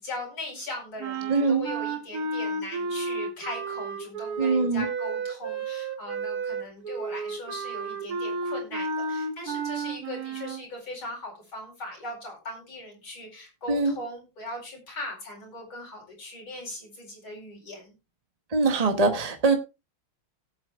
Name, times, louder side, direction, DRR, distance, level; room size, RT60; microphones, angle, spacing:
voice 1, 0.0-17.9, left 1 dB, 75° left, 0 dB, 5.3 m, -39 dB
sound 1, 1.0-10.6, right 4 dB, 50° right, 1.7 m, -32 dB
voice 2, 1.3-1.7 4.4-4.9 13.7-14.0 18.5-19.6, right 3 dB, 30° right, 6 dB, 0.7 m, -22 dB
17.5 x 8.0 x 2.4 m, 0.27 s
omnidirectional pair, 2.2 m